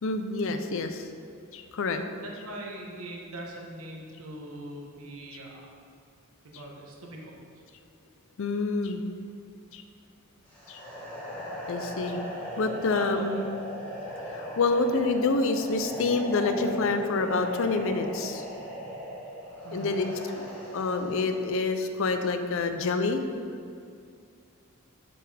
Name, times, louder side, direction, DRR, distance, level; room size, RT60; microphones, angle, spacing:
voice 1, 0.0-1.1 1.5-2.0 8.4-9.0 9.7-9.8 10.7-10.8 11.7-12.2 12.6-13.4 14.3-18.4 19.7-20.1 20.3-20.5 20.7-23.2, left 3 dB, 65° left, 7 dB, 0.5 m, -27 dB
voice 2, 2.2-5.7 6.5-7.3 12.9-13.2 19.6-19.9, right 1 dB, 80° right, -1 dB, 1.2 m, -41 dB
sound 1, 10.5-21.6, equal, 5° left, 1.4 m, -38 dB
7.0 x 5.9 x 3.4 m, 2.3 s
head